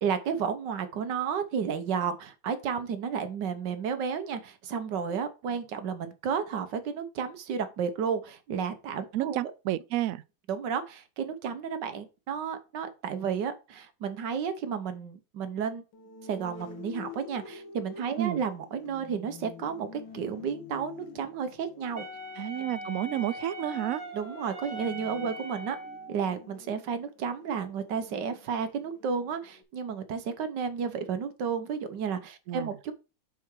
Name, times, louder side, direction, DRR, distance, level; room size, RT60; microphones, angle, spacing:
voice 1, 0.0-9.4 10.5-15.8 16.2-22.0 24.1-25.8 26.1-32.9, right 6 dB, 70° right, 1.6 m, -32 dB
voice 2, 9.1-10.2 18.2-18.4 22.4-24.0 25.2-25.3 32.5-32.7, right 14 dB, 85° right, 0.7 m, -31 dB
sound 1, 15.9-29.6, left 5 dB, 80° left, 2.0 m, -48 dB
Wind instrument woodwind instrument, 21.9-26.1, equal, 35° right, 2.0 m, -40 dB
5.9 x 5.9 x 4.6 m
omnidirectional pair, 2.0 m